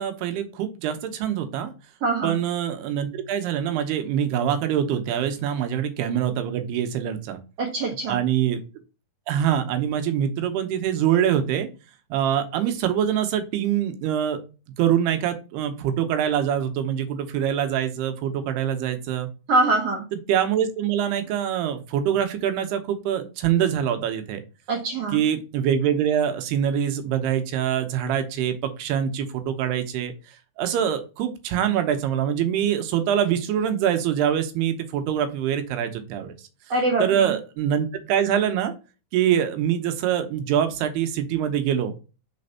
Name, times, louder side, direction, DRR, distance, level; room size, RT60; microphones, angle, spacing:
voice 1, 0.0-1.7 2.2-7.4 8.1-8.6 9.3-11.7 12.1-14.4 14.8-19.3 20.1-24.4 25.1-30.1 30.6-36.3 37.0-38.7 39.1-41.9, right 9 dB, 85° right, 8 dB, 2.9 m, -24 dB
voice 2, 2.0-2.4 7.6-8.2 19.5-20.1 24.7-25.2 36.7-37.4, right 2 dB, 60° right, 0 dB, 1.7 m, -23 dB
5.8 x 4.2 x 5.5 m, 0.32 s
omnidirectional pair, 4.7 m